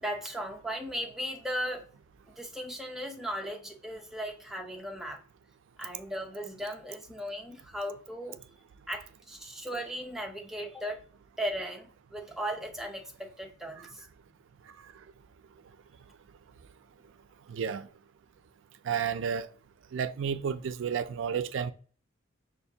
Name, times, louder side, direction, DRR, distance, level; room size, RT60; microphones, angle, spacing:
voice 1, 0.0-1.8 2.3-5.2 5.8-8.4 8.9-11.0 11.4-14.1, equal, ahead, 0.6 m, -37 dB
voice 2, 17.5-17.9 18.8-19.5 19.9-21.7, right 7 dB, 75° right, 0.3 m, -31 dB
5.7 x 2.5 x 2.7 m
head